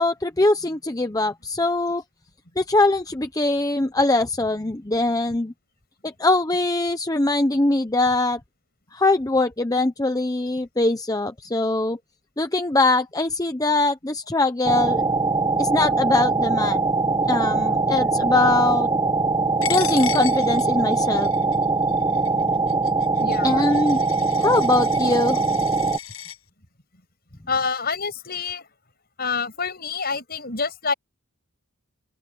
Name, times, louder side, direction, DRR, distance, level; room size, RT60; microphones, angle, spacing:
voice 1, 0.0-2.0 2.6-5.5 6.0-8.4 8.9-12.0 12.4-15.0 15.6-16.8 17.3-18.9 19.7-21.3 23.4-24.0 24.4-25.5, left 2 dB, 15° left, 0.8 m, -22 dB
sound 1, 14.6-26.0, right 3 dB, 15° right, 0.8 m, -22 dB
Coin (dropping), 19.6-26.4, left 11 dB, 70° left, 6.9 m, -36 dB
voice 2, 23.2-23.6 27.5-28.7 29.2-30.9, left 5 dB, 45° left, 7.3 m, -27 dB
open air
head